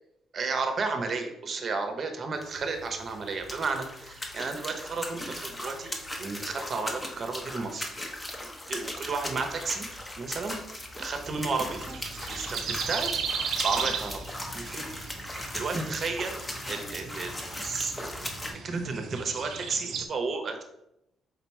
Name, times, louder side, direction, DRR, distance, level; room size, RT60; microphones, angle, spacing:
voice 1, 0.3-7.9 8.4-9.9 10.2-10.6 11.0-12.0 12.3-13.1 13.6-14.2 14.5-14.8 15.5-16.4 16.7-18.2 18.5-20.6, right 4 dB, 50° right, 5 dB, 0.8 m, -32 dB
sound 1, 2.3-18.5, left 1 dB, 20° left, 0.8 m, -38 dB
sound 2, 11.2-20.1, right 6 dB, 75° right, 0.5 m, -36 dB
3.9 x 2.9 x 4.6 m, 0.81 s
cardioid pair, 90°, 0 cm